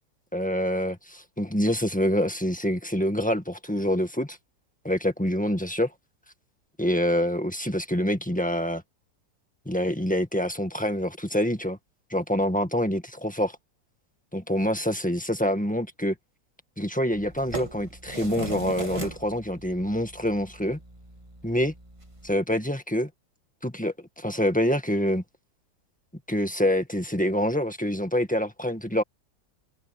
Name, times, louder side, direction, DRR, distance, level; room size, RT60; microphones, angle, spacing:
voice 1, 0.3-4.4 4.8-5.9 6.8-8.8 9.6-11.8 12.1-13.6 14.3-16.1 16.8-20.8 21.4-21.7 22.2-23.1 23.6-25.2 26.3-29.0, equal, 5° left, 1.6 m, -26 dB
sound 1, 17.1-22.3, right 2 dB, 20° right, 1.6 m, -39 dB
omnidirectional pair, 1.9 m